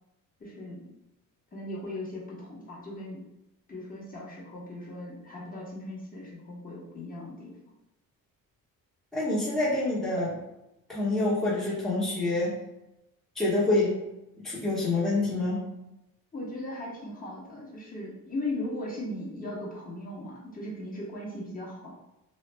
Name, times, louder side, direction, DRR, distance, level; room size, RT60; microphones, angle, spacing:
voice 1, 0.4-0.9 1.5-3.2 3.7-7.6 16.3-21.9, left 1 dB, 25° left, -6 dB, 1.1 m, -38 dB
voice 2, 9.1-10.3 10.9-12.5 13.3-13.9 14.4-15.6, left 2 dB, ahead, -8 dB, 0.9 m, -26 dB
3.1 x 2.0 x 3.2 m, 0.92 s
cardioid pair, 100°, 35 cm